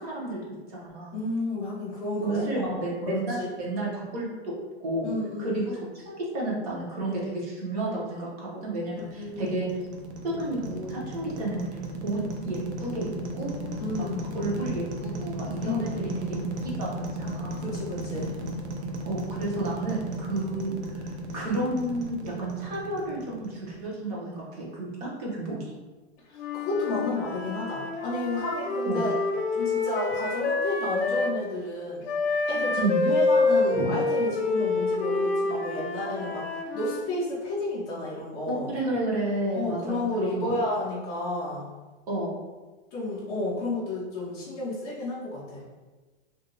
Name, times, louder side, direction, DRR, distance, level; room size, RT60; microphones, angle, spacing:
voice 1, 0.0-1.2 2.2-4.6 4.8-5.1 5.4-9.7 10.2-11.7 12.0-12.2 12.4-13.6 14.0-14.1 14.3-17.7 19.0-25.7 28.8-29.0 32.8-33.0 33.7-33.9 38.5-40.7 42.1-42.3, right 2 dB, 35° right, -4 dB, 0.9 m, -31 dB
voice 2, 1.1-2.6 3.1-3.5 5.0-5.8 9.1-9.5 13.8-14.2 15.6-16.2 17.6-18.3 26.3-29.1 29.5-32.0 32.5-36.5 36.7-38.7 39.5-41.7 42.9-45.6, left 2 dB, 10° left, -10 dB, 0.5 m, -31 dB
sound 1, 8.7-23.9, right 1 dB, 75° right, 0.7 m, -35 dB
Wind instrument woodwind instrument, 26.3-31.4 32.1-37.0, left 3 dB, 65° left, 0.6 m, -27 dB
2.6 x 2.2 x 3.8 m, 1.3 s
hypercardioid pair, 170°, 34 cm